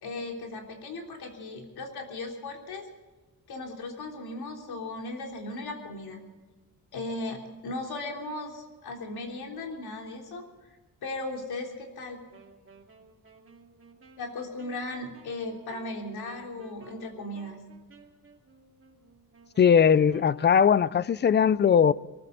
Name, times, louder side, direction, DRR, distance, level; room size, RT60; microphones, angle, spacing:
voice 1, 0.0-2.8 3.5-6.2 6.9-10.4 11.0-12.2 14.2-17.6, left 2 dB, 80° left, 3.7 m, -37 dB
Wind instrument woodwind instrument, 12.3-20.6, right 4 dB, 35° right, 2.5 m, -55 dB
voice 2, 19.6-21.9, left 7 dB, 30° left, 0.4 m, -20 dB
23.0 x 15.0 x 4.0 m
cardioid pair, 130°, 37 cm